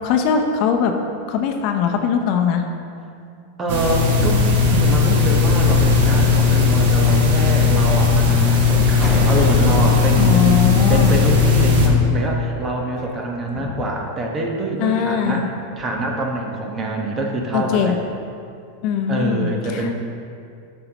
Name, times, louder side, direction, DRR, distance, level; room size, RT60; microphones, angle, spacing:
voice 1, 0.0-0.9 1.3-2.6 10.2-11.2 13.5-13.8 14.8-15.5 17.5-18.0 18.8-19.9, left 7 dB, 55° left, 4 dB, 0.7 m, -20 dB
voice 2, 3.6-10.6 10.9-15.5 15.8-18.0 19.1-19.9, right 2 dB, 30° right, 0 dB, 1.2 m, -25 dB
sound 1, 3.7-11.9, left 4 dB, 70° right, 1.4 m, -16 dB
sound 2, 9.0-11.6, left 1 dB, 15° left, 1.1 m, -30 dB
10.5 x 6.5 x 3.0 m, 2.4 s
hypercardioid pair, 110°, 0 cm